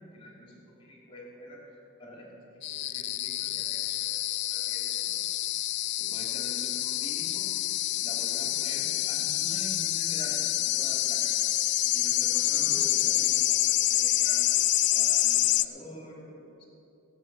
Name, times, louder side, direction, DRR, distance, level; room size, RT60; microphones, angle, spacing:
voice 1, 0.0-2.3 2.7-4.2 4.5-5.2 6.0-7.5 8.0-11.4 11.8-16.6, equal, 25° left, -2 dB, 2.8 m, -46 dB
sound 1, 2.6-15.6, left 15 dB, 50° left, 0.4 m, -27 dB
16.5 x 8.3 x 6.1 m, 2.8 s
head